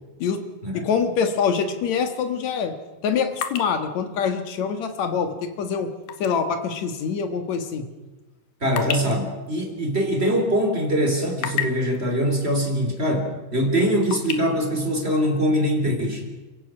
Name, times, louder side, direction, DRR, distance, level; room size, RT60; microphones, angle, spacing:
voice 1, 0.7-2.7 3.0-5.9 6.2-7.9, left 6 dB, 55° left, 7 dB, 2.4 m, -25 dB
sound 1, 2.4-6.4 6.7-6.9 7.5-10.6 11.0-12.0 13.0-13.1 13.4-14.4, left 9 dB, 75° left, 3.2 m, -33 dB
voice 2, 8.6-16.2, equal, 15° right, 3 dB, 2.8 m, -23 dB
30.0 x 16.5 x 6.2 m, 1.2 s
omnidirectional pair, 4.7 m